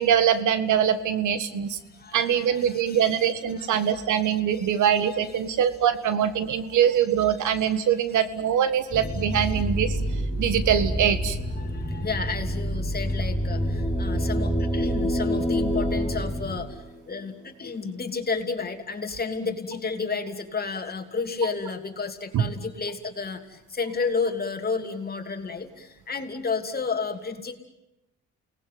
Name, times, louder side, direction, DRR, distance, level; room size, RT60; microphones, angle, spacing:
voice 1, 0.0-1.8 2.1-10.0 10.4-11.4 22.3-22.5, right 9 dB, 75° right, 12 dB, 1.8 m, -23 dB
voice 2, 2.0-3.2 3.6-3.9 4.6-4.8 11.6-16.7 17.1-27.5, left 4 dB, 30° left, 5 dB, 3.1 m, -31 dB
sound 1, 8.9-16.6, equal, 25° right, 5.6 m, -28 dB
sound 2, 13.3-17.2, left 1 dB, ahead, 4.6 m, -29 dB
29.5 x 19.5 x 9.5 m, 0.94 s
cardioid pair, 90°, 30 cm